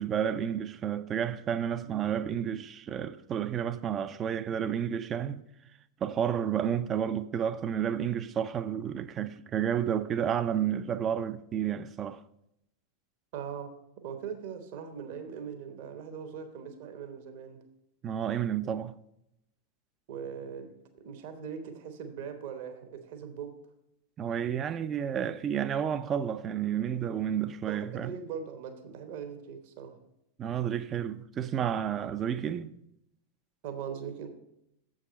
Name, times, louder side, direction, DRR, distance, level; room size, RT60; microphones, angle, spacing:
voice 1, 0.0-5.4 6.0-12.2 18.0-19.0 24.2-28.1 30.4-32.7, right 9 dB, 25° right, 0.4 m, -31 dB
voice 2, 13.3-13.7 14.0-17.6 20.1-23.6 27.6-30.0 33.6-34.3, right 7 dB, 50° right, 1.0 m, -40 dB
7.4 x 6.4 x 5.2 m
figure-of-eight pair, 90°, 0 cm